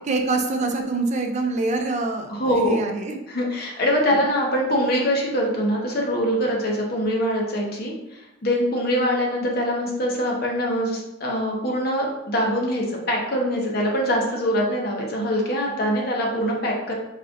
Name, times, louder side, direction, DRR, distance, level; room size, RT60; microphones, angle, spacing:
voice 1, 0.1-3.2, right 3 dB, 40° right, 4 dB, 0.4 m, -25 dB
voice 2, 2.3-2.8 3.3-16.9, equal, 60° left, -1 dB, 1.0 m, -23 dB
4.2 x 3.8 x 2.5 m, 0.90 s
head